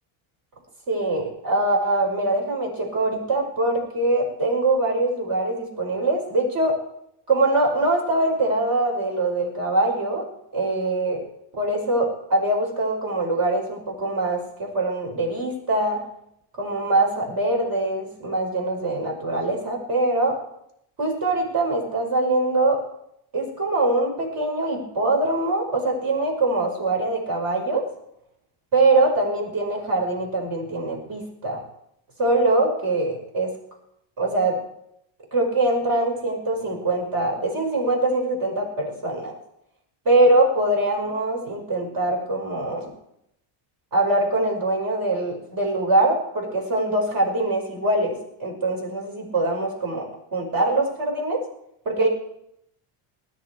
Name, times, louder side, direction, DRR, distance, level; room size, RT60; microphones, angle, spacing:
voice 1, 0.9-6.8 7.3-10.3 10.5-11.2 11.6-16.0 16.6-20.4 21.0-22.8 23.3-27.8 28.7-31.6 32.2-33.5 34.2-34.6 35.3-39.4 40.1-42.9 43.9-51.4 51.9-52.1, right 2 dB, 40° right, 0 dB, 5.6 m, -23 dB
19.5 x 11.0 x 4.7 m, 0.76 s
cardioid pair, 160°, 50 cm